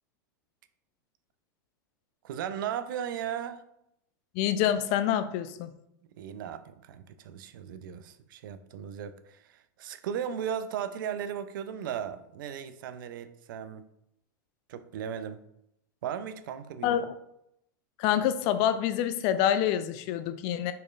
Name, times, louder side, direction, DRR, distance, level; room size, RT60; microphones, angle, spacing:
voice 1, 2.2-3.6 6.2-13.9 14.7-15.4 16.0-17.0, right 8 dB, 75° right, 12 dB, 0.4 m, -36 dB
voice 2, 4.3-5.7 16.8-17.1 18.0-20.7, left 10 dB, 50° left, 11 dB, 0.3 m, -26 dB
4.2 x 3.1 x 2.4 m, 0.78 s
hypercardioid pair, 110°, 11 cm